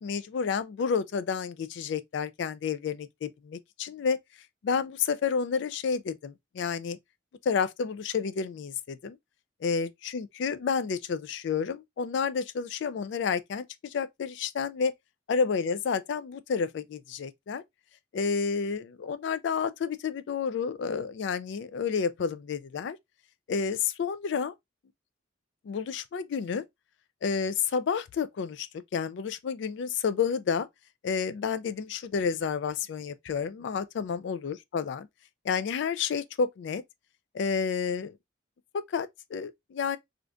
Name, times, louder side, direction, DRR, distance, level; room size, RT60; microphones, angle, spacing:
voice 1, 0.0-4.2 4.6-7.0 7.5-9.2 9.6-14.9 15.3-17.6 18.1-23.0 23.5-24.5 25.7-26.6 27.2-28.7 28.9-30.7 31.0-35.1 35.4-36.8 37.3-38.2 38.7-40.0, left 6 dB, 65° left, 0.3 m, -30 dB
2.5 x 2.5 x 3.2 m
head